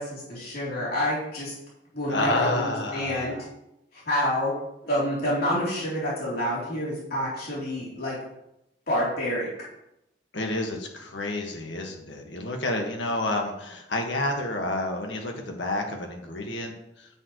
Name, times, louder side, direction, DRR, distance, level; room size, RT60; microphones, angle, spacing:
voice 1, 0.0-1.5 1.9-2.6 2.9-3.4 4.1-4.5 4.8-8.2 8.9-9.5, equal, 55° left, -7 dB, 3.5 m, -28 dB
voice 2, 2.1-3.5 10.3-17.1, left 2 dB, 85° left, 2 dB, 1.8 m, -29 dB
10.5 x 7.6 x 3.2 m, 0.83 s
head